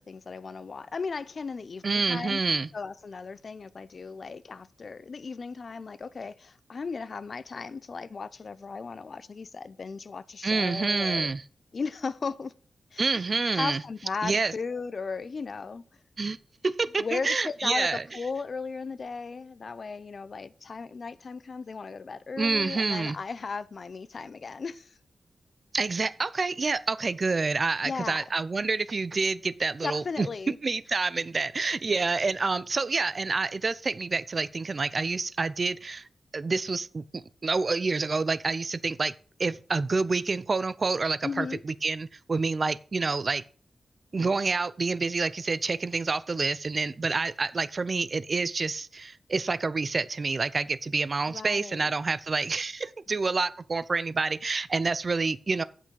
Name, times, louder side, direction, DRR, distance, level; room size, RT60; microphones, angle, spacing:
voice 1, 0.1-2.4 2.7-11.3 11.7-12.5 12.9-13.3 13.5-15.8 17.0-24.9 27.8-28.3 29.8-30.6 41.2-41.6 51.3-51.9, left 4 dB, 55° left, 0.5 m, -36 dB
voice 2, 1.8-2.7 10.4-11.4 13.0-13.8 14.2-14.5 16.2-16.4 16.6-18.0 22.4-23.2 25.7-30.3 30.6-36.1 36.3-39.1 39.4-43.4 44.1-55.6, right 4 dB, 45° right, 0.5 m, -28 dB
8.1 x 6.0 x 6.3 m
wide cardioid pair, 100°, 0 cm